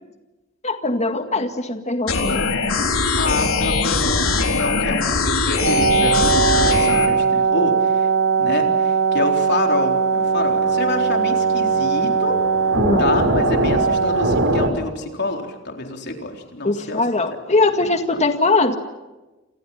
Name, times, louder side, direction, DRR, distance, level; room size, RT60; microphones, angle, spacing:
voice 1, 0.6-2.5 12.8-13.1 16.6-18.8, left 3 dB, 35° left, 6 dB, 2.0 m, -21 dB
sound 1, 2.1-7.1, left 4 dB, 85° left, 3.9 m, -21 dB
voice 2, 3.1-8.1 8.4-12.4 13.0-17.1 17.8-18.2, left 2 dB, 55° left, 3 dB, 4.1 m, -27 dB
sound 2, 5.6-14.7, right 4 dB, 70° right, 4.1 m, -19 dB
29.0 x 27.5 x 5.8 m, 1.1 s
head